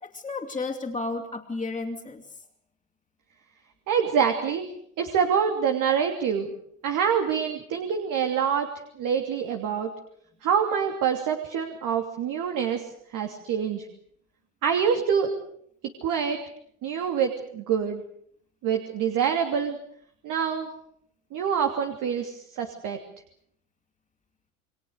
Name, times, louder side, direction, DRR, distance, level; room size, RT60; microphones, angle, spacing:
voice 1, 0.0-2.4, left 3 dB, 10° left, -2 dB, 3.1 m, -33 dB
voice 2, 3.9-4.7 5.0-6.5 6.8-8.7 9.0-9.9 10.4-13.9 14.6-15.3 16.0-16.4 16.8-18.0 18.6-19.8 20.2-20.7 21.3-23.0, right 7 dB, 50° right, 5 dB, 3.0 m, -26 dB
29.0 x 22.5 x 6.6 m, 0.67 s
hypercardioid pair, 95°, 42 cm